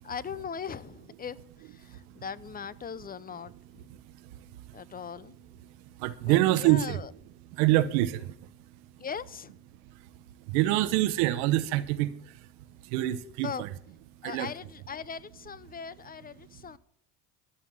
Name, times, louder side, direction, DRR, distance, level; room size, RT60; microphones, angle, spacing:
voice 1, 0.0-1.4 1.7-3.9 4.7-5.4 6.3-7.1 9.0-9.5 13.4-13.6 14.2-16.8, left 7 dB, 20° left, 0.5 m, -39 dB
voice 2, 1.8-2.2 3.7-5.0 5.6-7.1 7.5-8.9 9.8-13.7 14.2-14.5 16.4-16.5, right 15 dB, 70° right, 1.0 m, -28 dB
12.5 x 7.2 x 7.4 m
hypercardioid pair, 80°, 44 cm